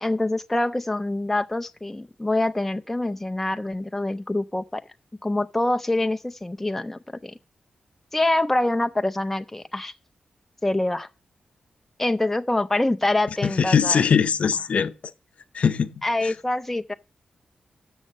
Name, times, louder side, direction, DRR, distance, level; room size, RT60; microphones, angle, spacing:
voice 1, 0.0-4.8 5.2-7.3 8.1-9.9 10.6-11.1 12.0-14.0 16.0-16.9, left 2 dB, 10° left, 0.4 m, -25 dB
voice 2, 13.4-14.9 15.5-16.0, left 6 dB, 60° left, 0.6 m, -21 dB
13.0 x 6.4 x 4.1 m
wide cardioid pair, 150°, 3 cm